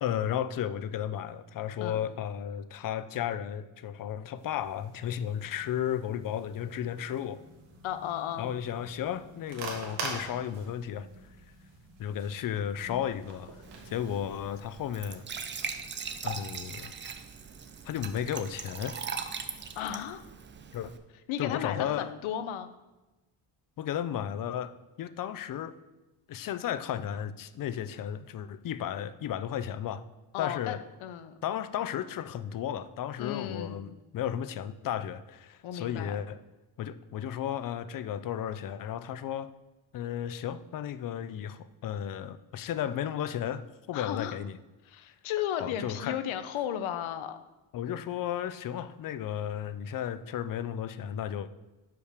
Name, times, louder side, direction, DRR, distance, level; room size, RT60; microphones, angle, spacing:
voice 1, 0.0-7.4 8.4-11.1 12.0-13.5 13.9-15.2 16.2-16.9 17.8-19.0 20.7-20.9 21.4-22.1 23.8-24.7 25.0-25.7 26.3-30.0 30.4-30.8 31.4-36.4 36.8-39.5 39.9-44.6 45.6-46.2 47.7-51.5, left 10 dB, 45° left, 14 dB, 0.4 m, -34 dB
sound 1, 4.4-14.2, right 3 dB, 55° right, 1.8 m, -45 dB
voice 2, 7.8-8.5 19.8-20.2 21.3-22.7 30.3-31.4 33.2-33.9 35.6-36.2 43.9-44.4 44.9-47.4, left 10 dB, 75° left, 10 dB, 0.8 m, -34 dB
Glass / Trickle dribble / Fill (with liquid), 13.6-21.0, right 6 dB, 25° right, 0.4 m, -40 dB
6.2 x 5.7 x 6.5 m, 1.1 s
cardioid pair, 155°, 48 cm